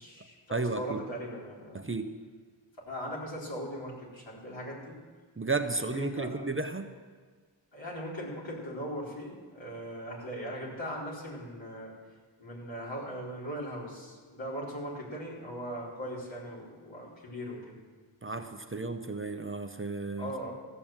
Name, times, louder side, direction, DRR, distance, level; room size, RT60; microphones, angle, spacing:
voice 1, 0.0-1.8 2.9-5.0 5.9-6.3 7.7-11.9 12.4-17.7 20.2-20.6, equal, 65° left, -5 dB, 4.1 m, -39 dB
voice 2, 0.5-1.0 1.7-2.1 5.4-6.9 18.2-20.3, right 3 dB, 25° right, 6 dB, 0.8 m, -33 dB
15.0 x 7.1 x 7.3 m, 1.5 s
cardioid pair, 45°, 49 cm